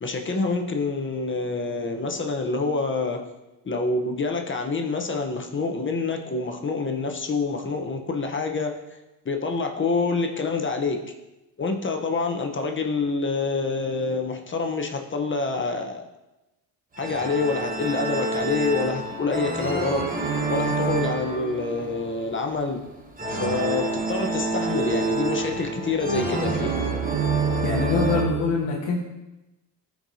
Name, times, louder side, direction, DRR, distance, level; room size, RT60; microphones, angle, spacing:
voice 1, 0.0-3.3 3.6-8.7 9.2-11.0 11.6-16.1 17.0-20.1 20.5-22.8 23.3-26.9, left 3 dB, 30° left, 3 dB, 0.9 m, -27 dB
sound 1, 17.0-28.3, right 3 dB, 20° right, 1.1 m, -27 dB
voice 2, 27.6-29.0, left 3 dB, 90° left, -2 dB, 1.1 m, -24 dB
12.5 x 4.7 x 2.7 m, 1.0 s
cardioid pair, 85°, 41 cm